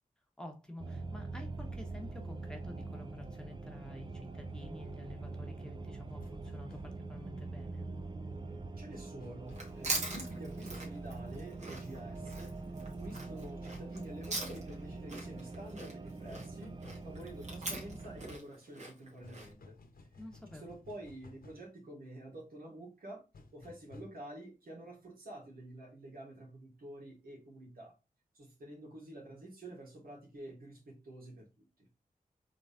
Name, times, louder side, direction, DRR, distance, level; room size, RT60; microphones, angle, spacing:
voice 1, 0.4-7.8 20.2-20.7, left 1 dB, 5° left, 1.2 m, -50 dB
sound 1, 0.8-18.4, right 3 dB, 30° right, 0.5 m, -44 dB
sound 2, 6.1-6.9 8.9-9.7 12.1-12.4 13.6-13.8 15.2-15.4 16.8-17.1 19.2-21.7 23.3-24.0, left 3 dB, 80° left, 0.8 m, -55 dB
voice 2, 8.8-19.8 20.5-23.2 23.5-27.9 28.3-31.7, right 1 dB, 85° right, 2.2 m, -49 dB
Chewing mastication, 9.5-14.8 15.1-19.5, right 2 dB, 50° right, 1.7 m, -42 dB
3.9 x 3.3 x 3.5 m
wide cardioid pair, 100°, 15 cm